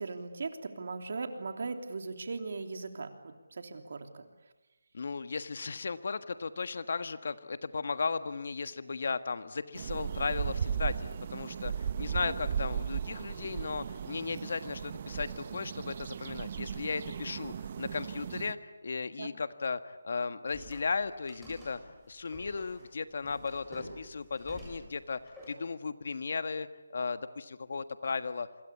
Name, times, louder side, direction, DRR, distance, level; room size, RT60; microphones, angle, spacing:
voice 1, 0.0-4.3 12.1-12.3 19.2-19.3, right 4 dB, 55° right, 6 dB, 3.3 m, -39 dB
voice 2, 4.9-21.8 22.1-25.2 25.5-26.7 26.9-28.5, left 4 dB, 55° left, 12 dB, 1.5 m, -36 dB
sound 1, 9.7-18.5, right 7 dB, 35° right, 1.1 m, -36 dB
sound 2, 20.5-25.5, equal, ahead, 7.5 m, -49 dB
27.0 x 25.5 x 8.5 m, 1.1 s
figure-of-eight pair, 160°, 0 cm